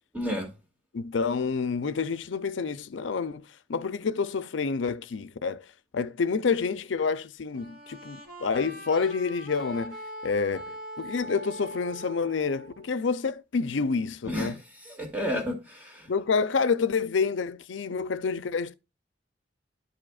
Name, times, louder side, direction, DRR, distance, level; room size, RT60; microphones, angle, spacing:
voice 1, 0.1-0.5 14.2-14.6 14.8-16.1, equal, 10° right, 2.1 m, -31 dB
voice 2, 0.9-5.6 5.9-10.0 10.2-14.5 16.1-18.7, left 5 dB, 80° left, 0.5 m, -28 dB
sound 1, 7.5-13.0, right 1 dB, 55° right, 2.7 m, -42 dB
12.5 x 4.9 x 2.4 m
head